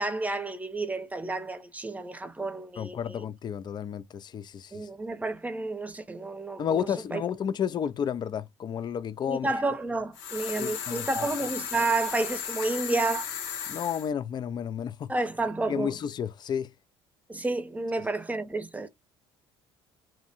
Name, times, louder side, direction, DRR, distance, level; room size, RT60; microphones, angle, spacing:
voice 1, 0.0-3.2 4.7-7.2 9.3-13.3 15.1-15.9 17.3-18.9, right 2 dB, 10° right, 0.7 m, -30 dB
voice 2, 2.8-4.9 6.6-9.5 10.6-11.3 13.7-15.1 15.7-16.7, left 8 dB, 35° left, 0.3 m, -31 dB
sound 1, 10.1-14.1, left 8 dB, 80° left, 0.6 m, -35 dB
2.5 x 2.1 x 2.8 m
hypercardioid pair, 65°, 12 cm